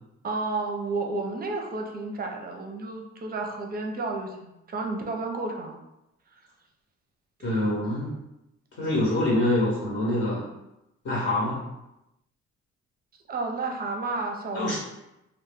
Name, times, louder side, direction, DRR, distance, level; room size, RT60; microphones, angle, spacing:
voice 1, 0.2-5.8 7.4-7.6 13.3-14.8, right 3 dB, 30° right, 3 dB, 0.5 m, -31 dB
voice 2, 7.4-8.1 8.8-10.5 11.0-11.6 14.5-14.8, left 1 dB, 50° left, -6 dB, 0.9 m, -25 dB
2.2 x 2.0 x 3.3 m, 0.89 s
cardioid pair, 90°, 30 cm